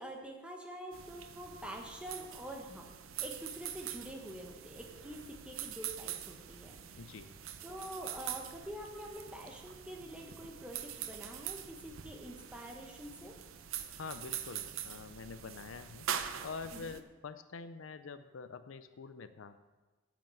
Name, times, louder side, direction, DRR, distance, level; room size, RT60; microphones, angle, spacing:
voice 1, 0.0-2.9 3.2-6.8 7.6-13.3 16.7-17.0, equal, 5° right, 1 dB, 1.1 m, -46 dB
sound 1, 0.9-17.0, right 9 dB, 80° right, 0.7 m, -44 dB
voice 2, 7.0-7.4 14.0-19.6, left 5 dB, 75° left, 11 dB, 0.5 m, -46 dB
8.8 x 6.0 x 7.5 m, 1.2 s
head